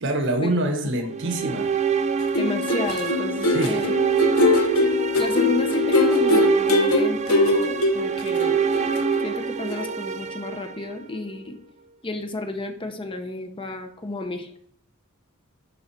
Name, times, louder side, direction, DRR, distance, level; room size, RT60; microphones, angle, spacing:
voice 1, 0.0-1.7 3.5-3.8, right 1 dB, 60° right, 1.2 m, -25 dB
voice 2, 0.8-1.3 2.4-3.9 5.2-8.5 9.2-11.6 12.0-14.5, left 1 dB, 25° left, 0.8 m, -32 dB
sound 1, 1.1-11.3, right 7 dB, 35° right, 0.5 m, -26 dB
sound 2, 2.2-9.4 9.7-9.9, left 3 dB, 75° left, 1.2 m, -22 dB
11.0 x 3.9 x 4.5 m
head